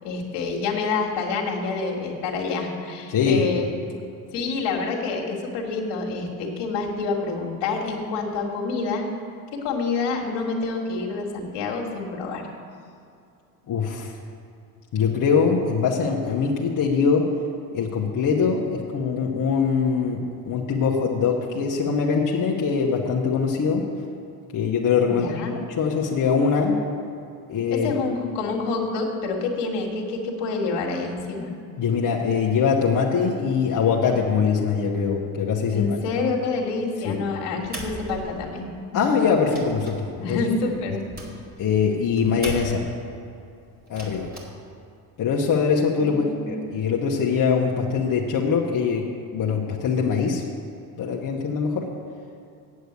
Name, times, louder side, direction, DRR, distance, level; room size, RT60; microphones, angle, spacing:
voice 1, 0.0-3.7 4.3-9.1 9.5-12.4 25.1-25.6 27.7-31.5 35.7-39.0 40.2-41.0 46.0-46.5, left 4 dB, 60° left, 0 dB, 2.1 m, -27 dB
voice 2, 3.1-3.4 13.7-14.2 14.9-17.2 17.7-23.8 24.5-25.5 25.8-26.8 27.5-27.9 31.8-35.9 37.1-37.2 38.9-40.4 41.6-42.9 43.9-44.3 45.2-49.0 49.3-50.4 51.0-51.9, left 6 dB, 45° left, -3 dB, 1.4 m, -22 dB
sound 1, 37.6-38.8 39.2-43.1 43.8-44.4, right 2 dB, 20° right, 3.0 m, -39 dB
8.5 x 8.0 x 8.2 m, 2.5 s
hypercardioid pair, 75°, 46 cm